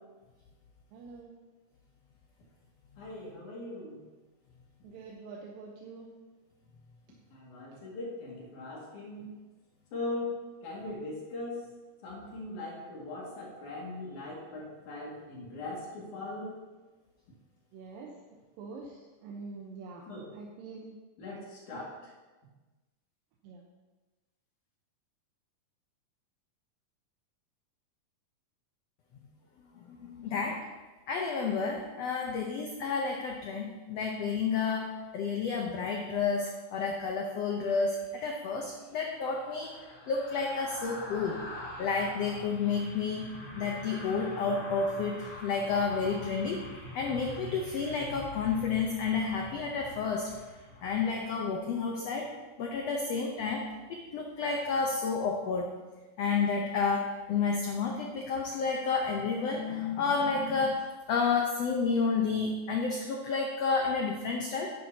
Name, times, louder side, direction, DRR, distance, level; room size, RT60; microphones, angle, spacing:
voice 1, 0.9-1.3 4.8-6.1 7.7-7.8 17.7-18.2 18.6-20.0 20.3-21.0 23.4-23.6, right 4 dB, 80° right, -1 dB, 2.6 m, -45 dB
voice 2, 3.0-4.0 7.3-9.3 9.9-11.6 12.0-16.6 20.1-20.3 21.2-22.1, left 2 dB, 60° left, -4 dB, 3.3 m, -40 dB
voice 3, 29.9-30.6 31.1-39.7 40.1-41.4 41.8-46.6 46.9-50.3 50.8-52.3 52.6-55.7 56.2-60.8 61.1-64.7, left 5 dB, 80° left, 1 dB, 1.4 m, -30 dB
sound 1, 38.3-51.7 52.0-52.2, left 1 dB, 40° left, 1.4 m, -45 dB
10.5 x 10.5 x 2.8 m, 1.2 s
omnidirectional pair, 4.0 m